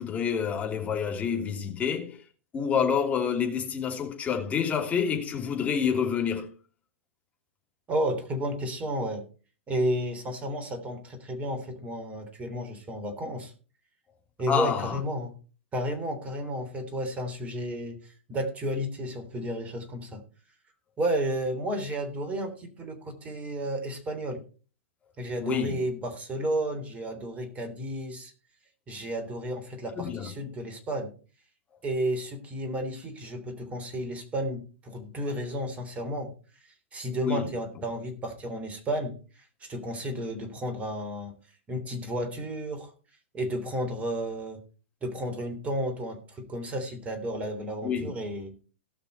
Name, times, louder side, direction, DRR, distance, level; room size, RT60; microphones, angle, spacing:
voice 1, 0.0-2.2 2.5-6.5 14.5-15.0 25.4-25.8 29.9-30.3 37.2-37.5 47.8-48.1, left 7 dB, 20° left, 2.9 m, -28 dB
voice 2, 7.9-9.2 9.7-13.5 14.4-15.3 15.7-20.2 21.0-24.4 25.2-28.3 28.9-31.1 31.8-36.3 36.6-41.3 41.7-42.9 43.3-44.6 45.0-48.5, right 1 dB, 20° right, 3.3 m, -32 dB
18.0 x 6.0 x 4.3 m
figure-of-eight pair, 105°, 7 cm